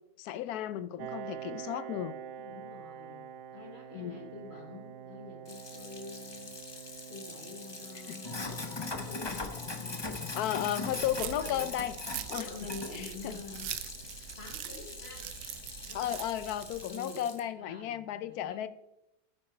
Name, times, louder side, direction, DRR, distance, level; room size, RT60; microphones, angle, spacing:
voice 1, 0.2-2.1 3.9-4.3 8.1-8.2 10.4-11.9 12.3-12.5 12.9-13.4 15.9-18.7, left 11 dB, 70° left, 1.1 m, -34 dB
Piano, 1.0-16.3, right 9 dB, 90° right, 1.2 m, -48 dB
voice 2, 2.4-3.3 3.5-6.5 7.1-9.5 9.8-10.0 10.4-11.7 12.3-13.7 14.4-15.3 15.8-16.2 16.8-17.2 17.5-18.7, left 3 dB, 40° left, 1.5 m, -47 dB
Sink (filling or washing), 5.5-17.4, left 3 dB, 25° left, 0.7 m, -41 dB
sound 1, 10.9-16.9, right 11 dB, 70° right, 1.1 m, -43 dB
9.6 x 8.9 x 4.4 m
omnidirectional pair, 1.8 m